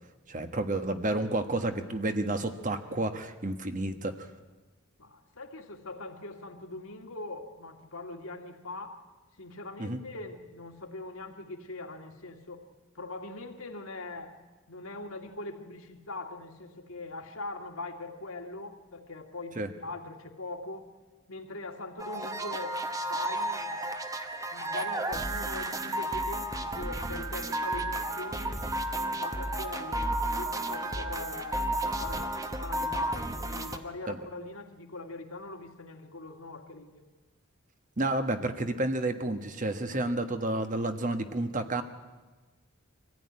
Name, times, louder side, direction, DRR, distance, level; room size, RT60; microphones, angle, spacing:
voice 1, 0.3-4.3 9.8-10.0 19.6-19.7 34.1-34.2 38.0-41.8, right 2 dB, 35° right, 8 dB, 1.3 m, -30 dB
voice 2, 5.0-9.1 9.4-12.7 13.0-14.4 14.7-20.9 21.3-23.8 24.5-30.1 30.3-37.0, left 2 dB, 75° left, 4 dB, 2.0 m, -41 dB
sound 1, 22.0-33.8, right 1 dB, 15° right, 1.1 m, -32 dB
24.0 x 15.5 x 9.6 m, 1.3 s
head